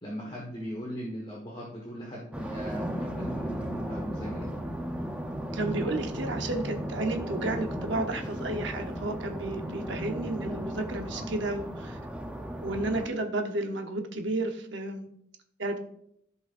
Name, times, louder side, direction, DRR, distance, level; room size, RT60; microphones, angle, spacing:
voice 1, 0.0-4.6 11.1-11.2, equal, 25° left, -3 dB, 1.3 m, -39 dB
sound 1, 2.3-13.1, equal, 5° right, 0.6 m, -35 dB
voice 2, 5.5-12.0 12.6-15.1 15.6-15.8, right 2 dB, 60° right, 5 dB, 0.9 m, -32 dB
14.5 x 5.4 x 2.5 m, 0.73 s
head